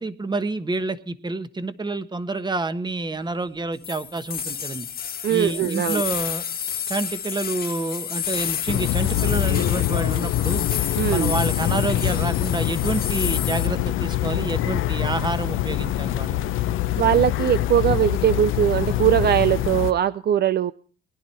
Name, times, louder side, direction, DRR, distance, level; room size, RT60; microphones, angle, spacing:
voice 1, 0.0-4.9 5.3-6.4 6.9-10.6 11.1-16.4, right 2 dB, 20° right, 11 dB, 1.3 m, -28 dB
sound 1, 3.8-13.7, left 8 dB, 50° left, 1.6 m, -31 dB
voice 2, 5.2-6.0 11.0-11.3 17.0-20.7, right 10 dB, 55° right, 14 dB, 0.5 m, -20 dB
sound 2, 8.7-19.9, left 14 dB, 85° left, 0.7 m, -24 dB
20.0 x 11.0 x 4.3 m, 0.43 s
cardioid pair, 90°, 20 cm